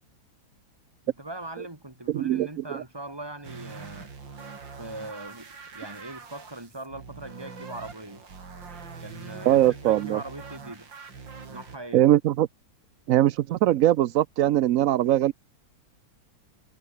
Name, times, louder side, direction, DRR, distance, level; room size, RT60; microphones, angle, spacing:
voice 1, 1.0-4.1 4.8-8.2 9.0-10.9 11.5-12.1, right 2 dB, 10° right, 2.7 m, -40 dB
voice 2, 2.1-2.5 9.5-10.2 11.9-12.5 13.1-15.3, right 13 dB, 90° right, 0.7 m, -21 dB
sound 1, 3.4-11.8, right 5 dB, 70° right, 3.7 m, -43 dB
omnidirectional pair, 2.1 m